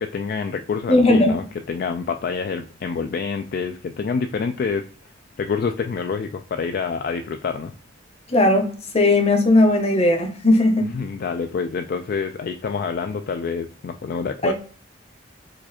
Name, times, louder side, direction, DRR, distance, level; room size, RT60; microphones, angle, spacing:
voice 1, 0.0-4.8 5.4-7.7 10.9-14.5, left 5 dB, 50° left, 0.3 m, -27 dB
voice 2, 0.9-1.3 8.3-10.9 14.4-14.5, left 2 dB, 35° left, 0.9 m, -17 dB
4.8 x 2.4 x 4.2 m
head